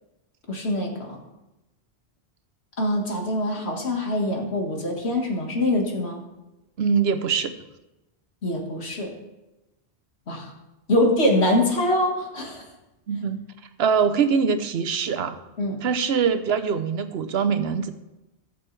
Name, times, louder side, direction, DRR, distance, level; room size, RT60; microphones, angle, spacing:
voice 1, 0.5-1.2 2.8-6.2 8.4-9.2 10.3-10.5 10.9-12.6 15.6-15.8, left 1 dB, 70° left, 1 dB, 2.0 m, -24 dB
voice 2, 6.8-7.5 13.1-13.4 13.8-15.4 15.8-17.9, right 6 dB, 70° right, 10 dB, 1.0 m, -23 dB
17.5 x 7.0 x 3.3 m, 0.99 s
omnidirectional pair, 1.1 m